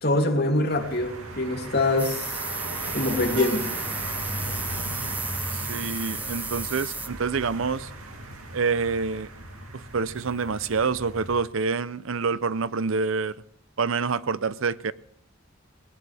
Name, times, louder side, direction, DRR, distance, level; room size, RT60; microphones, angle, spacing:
voice 1, 0.0-2.4 2.9-3.7, left 2 dB, 50° left, 2.9 m, -24 dB
sound 1, 0.7-11.4, right 1 dB, 90° right, 2.7 m, -36 dB
sound 2, 2.0-7.1, right 3 dB, 10° right, 0.7 m, -34 dB
voice 2, 5.5-7.9 8.5-9.3 9.7-13.3 13.8-14.9, right 5 dB, 70° right, 0.6 m, -27 dB
20.5 x 18.5 x 3.4 m
head